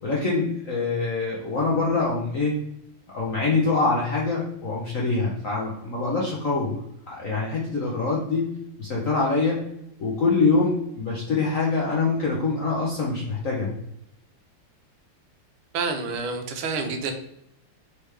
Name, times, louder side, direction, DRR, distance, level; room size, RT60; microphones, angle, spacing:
voice 1, 0.0-2.5 3.1-6.7 7.1-8.5 8.8-9.6 10.0-13.7, left 3 dB, 60° left, -4 dB, 0.9 m, -24 dB
voice 2, 15.7-17.1, right 4 dB, 80° right, 5 dB, 1.5 m, -28 dB
4.6 x 3.4 x 3.2 m, 0.77 s
omnidirectional pair, 2.4 m